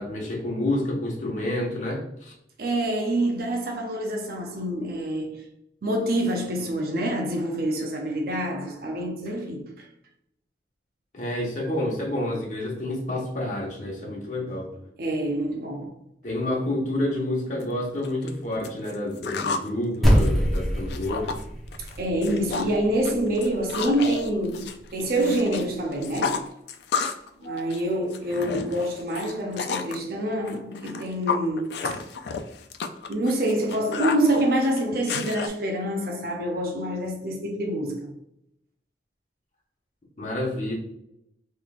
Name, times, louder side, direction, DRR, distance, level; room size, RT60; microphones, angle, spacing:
voice 1, 0.0-2.3 11.1-14.7 16.2-21.4 27.4-27.7 40.2-40.7, left 1 dB, 45° left, 1.1 m, -29 dB
voice 2, 2.6-5.5 5.8-9.9 15.0-15.9 21.8-24.7 24.9-26.5 27.4-32.0 33.1-38.1, right 1 dB, 55° right, 0.6 m, -26 dB
sound 1, 17.6-17.7 18.0-19.7 20.0-21.4 21.7-22.0 22.2-22.8 23.1-25.6 25.9-27.3 27.6-30.0 30.5-35.5, left 5 dB, 65° left, 0.3 m, -31 dB
sound 2, 20.0-24.5, equal, ahead, 1.0 m, -25 dB
3.7 x 3.2 x 2.4 m
head